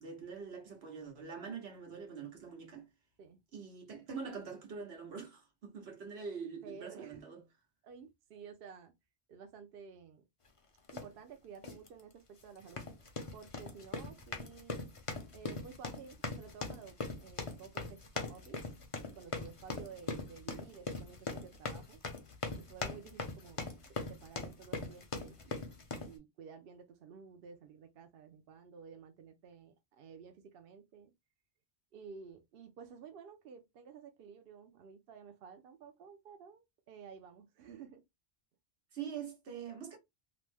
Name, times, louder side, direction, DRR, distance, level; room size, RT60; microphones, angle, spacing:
voice 1, 0.0-2.9 3.5-7.4 38.9-40.0, right 6 dB, 90° right, 1.3 m, -44 dB
voice 2, 6.6-7.3 7.8-8.9 9.3-10.3 10.9-12.9 13.3-14.8 15.3-18.7 19.1-22.0 22.6-23.6 24.0-25.8 26.1-31.1 31.9-38.0, right 6 dB, 70° right, 0.8 m, -53 dB
sound 1, 10.9-11.1 11.6-11.9 12.6-26.1, left 3 dB, 40° left, 0.6 m, -41 dB
3.0 x 2.0 x 3.3 m
omnidirectional pair, 1.0 m